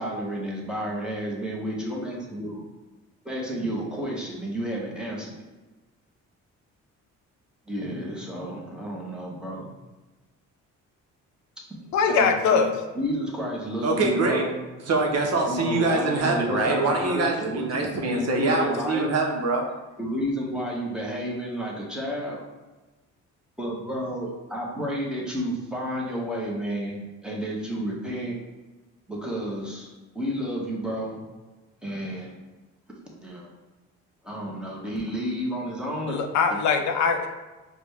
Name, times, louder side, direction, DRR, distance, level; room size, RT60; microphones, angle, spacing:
voice 1, 0.0-2.6 3.2-5.3 7.7-9.7 12.1-12.7 12.9-14.6 15.5-17.8 18.1-19.1 20.0-22.4 23.6-28.3 29.1-29.9 30.1-31.2 31.8-32.4 33.2-33.5 34.2-36.2 36.5-36.6, equal, 5° right, -3 dB, 1.0 m, -31 dB
voice 2, 11.9-12.7 36.1-37.3, left 5 dB, 70° left, 5 dB, 0.5 m, -22 dB
voice 3, 13.8-14.4 14.9-19.6, right 3 dB, 55° right, 0 dB, 0.8 m, -24 dB
4.8 x 2.3 x 3.3 m, 1.2 s
cardioid pair, 90°, 30 cm